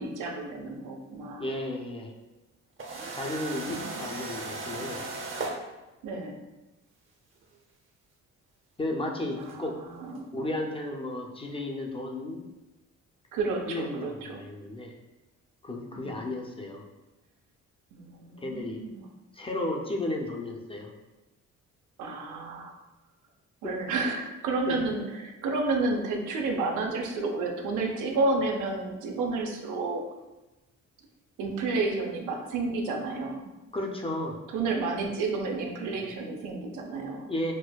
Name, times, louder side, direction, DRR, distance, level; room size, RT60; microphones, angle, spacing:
voice 1, 0.0-1.5 3.6-4.1 4.7-4.9 6.0-6.4 9.4-10.6 13.3-14.4 15.9-16.3 17.9-19.0 22.0-22.7 23.6-30.0 31.4-33.5 34.5-37.3, right 3 dB, 90° right, 2 dB, 0.6 m, -31 dB
voice 2, 1.4-2.1 3.1-5.0 8.8-9.8 10.3-12.4 13.7-14.9 15.6-16.8 18.4-18.8 19.3-20.9 23.6-23.8 24.7-24.8 33.7-34.4 37.3-37.5, left 1 dB, 20° left, 0 dB, 0.4 m, -33 dB
sound 1, 2.8-5.6 7.4-7.5 9.5-9.6, right 3 dB, 45° right, 0.6 m, -36 dB
4.2 x 2.1 x 2.2 m, 1.1 s
cardioid pair, 90°, 30 cm